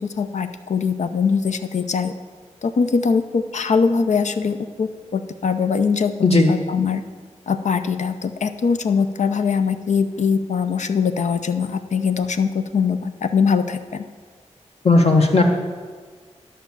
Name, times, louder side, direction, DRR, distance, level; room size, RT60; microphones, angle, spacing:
voice 1, 0.0-2.1 2.6-6.1 6.5-7.0 7.5-14.1, left 5 dB, 85° left, 10 dB, 0.7 m, -22 dB
voice 2, 14.8-15.4, left 3 dB, 60° left, 1 dB, 1.6 m, -14 dB
11.5 x 6.1 x 7.1 m, 1.5 s
wide cardioid pair, 100°, 12 cm